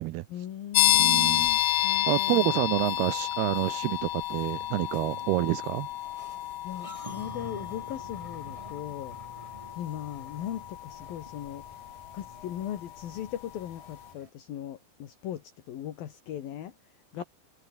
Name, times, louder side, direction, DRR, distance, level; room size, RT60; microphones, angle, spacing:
voice 1, 0.3-2.9 6.6-9.2 9.8-16.7 17.1-17.2, left 11 dB, 60° left, 3.3 m, -39 dB
sound 1, 0.7-13.3, left 14 dB, 85° left, 1.9 m, -30 dB
voice 2, 0.9-1.5 2.1-5.9, right 17 dB, 80° right, 2.4 m, -28 dB
sound 2, 4.9-14.3, right 2 dB, 15° right, 1.1 m, -49 dB
omnidirectional pair, 5.2 m